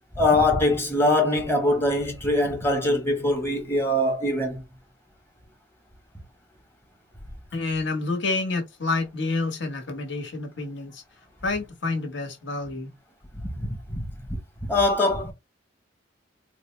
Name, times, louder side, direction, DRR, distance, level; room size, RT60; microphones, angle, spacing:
voice 1, 0.2-4.6 13.6-14.1 14.7-15.3, left 1 dB, 10° left, 0.8 m, -22 dB
voice 2, 7.5-11.0 11.4-12.9, left 3 dB, 65° left, 1.1 m, -28 dB
4.1 x 2.1 x 3.1 m
head